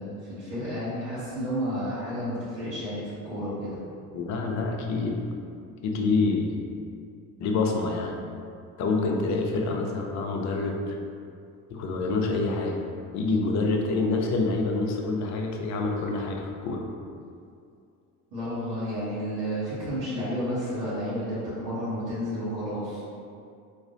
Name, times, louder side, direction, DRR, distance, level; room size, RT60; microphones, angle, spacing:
voice 1, 0.0-3.8 18.3-23.0, equal, 70° right, -12 dB, 1.2 m, -31 dB
voice 2, 4.1-5.2 5.8-6.6 7.4-8.2 8.8-11.0 11.7-12.8 13.1-16.8, left 3 dB, 40° left, 2 dB, 0.6 m, -27 dB
4.0 x 2.5 x 2.5 m, 2.4 s
hypercardioid pair, 65°, 43 cm